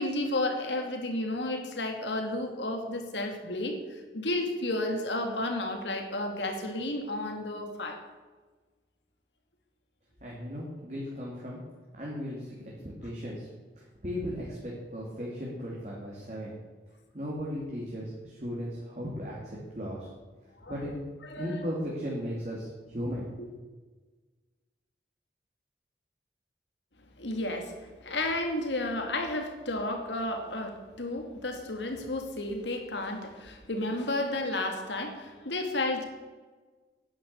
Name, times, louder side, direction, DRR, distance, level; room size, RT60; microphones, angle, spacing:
voice 1, 0.0-8.0 20.6-20.9 21.2-21.6 23.4-23.5 27.2-36.0, left 2 dB, 90° left, 4 dB, 2.4 m, -32 dB
voice 2, 10.2-11.6 12.0-12.6 13.0-13.5 13.7-16.6 17.1-20.1 20.7-21.0 21.4-23.3, equal, 40° right, -4 dB, 2.8 m, -36 dB
10.5 x 10.0 x 8.3 m, 1.3 s
head